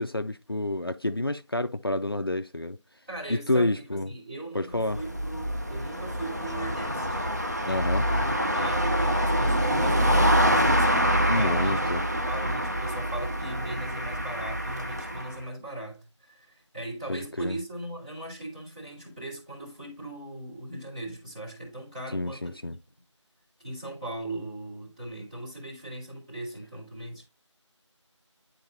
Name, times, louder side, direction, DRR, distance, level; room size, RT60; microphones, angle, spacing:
voice 1, 0.0-2.8 3.3-4.1 4.5-5.0 7.6-8.1 11.3-12.0 17.1-17.6 22.1-22.8, left 1 dB, 50° left, 0.4 m, -28 dB
voice 2, 3.1-7.3 8.0-11.8 12.2-22.8 23.6-27.2, right 1 dB, 15° right, 2.5 m, -39 dB
sound 1, 4.7-15.4, equal, 35° right, 0.6 m, -26 dB
10.5 x 4.0 x 2.6 m
figure-of-eight pair, 175°, 16 cm